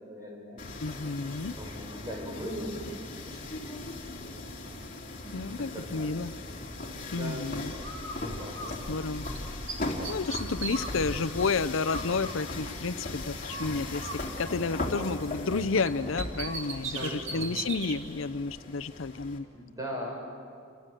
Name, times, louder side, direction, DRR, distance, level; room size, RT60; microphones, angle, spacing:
voice 1, 0.0-0.7 1.6-2.8 3.1-3.8 4.3-4.7 5.2-6.1 7.1-7.5 8.2-8.6 16.8-17.5 19.5-20.2, equal, 20° right, -1 dB, 7.2 m, -40 dB
sound 1, 0.6-19.4, left 2 dB, 40° left, 3.3 m, -38 dB
voice 2, 0.8-1.6 5.3-6.3 7.1-7.7 8.9-9.3 10.1-19.5, left 4 dB, 75° left, 12 dB, 0.7 m, -31 dB
Bird, 7.8-9.4 9.7-13.1 13.5-15.6 15.9-18.0, right 4 dB, 65° right, 2.9 m, -40 dB
30.0 x 25.5 x 7.7 m, 2.3 s
head